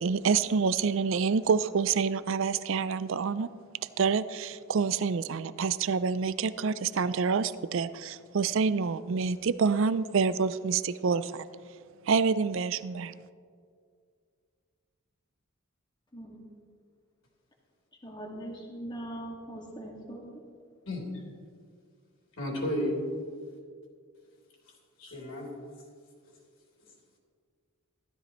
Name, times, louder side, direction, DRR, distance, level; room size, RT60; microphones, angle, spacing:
voice 1, 0.0-3.5 4.0-11.5 12.1-13.1, right 5 dB, 60° right, 15 dB, 0.4 m, -27 dB
voice 2, 18.0-20.2, right 1 dB, 20° left, -1 dB, 1.9 m, -41 dB
voice 3, 22.4-22.9 25.0-25.5, left 1 dB, 65° left, -3 dB, 3.2 m, -32 dB
15.0 x 13.0 x 3.0 m, 2.1 s
head